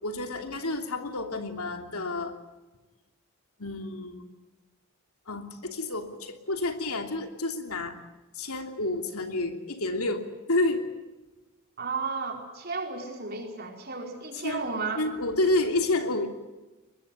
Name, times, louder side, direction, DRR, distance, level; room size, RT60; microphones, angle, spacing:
voice 1, 0.0-2.3 3.6-4.3 5.3-7.9 8.3-10.2 10.5-10.8 14.4-14.7 15.0-16.3, left 2 dB, 80° left, 5 dB, 3.0 m, -29 dB
voice 2, 11.8-15.0, right 4 dB, 45° right, 2 dB, 4.8 m, -33 dB
23.5 x 21.0 x 9.3 m, 1.1 s
head